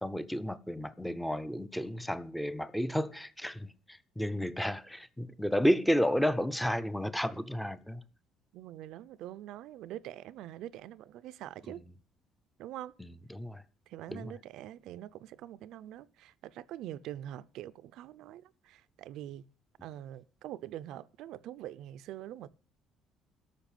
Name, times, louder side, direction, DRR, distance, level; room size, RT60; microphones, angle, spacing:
voice 1, 0.0-8.0 11.7-11.8 13.0-13.6 14.1-14.3, equal, 5° left, 0.7 m, -32 dB
voice 2, 8.5-11.8 12.6-12.9 13.9-19.5 19.8-22.5, right 12 dB, 70° right, 0.6 m, -44 dB
13.0 x 5.9 x 9.1 m
cardioid pair, 150°, 0 cm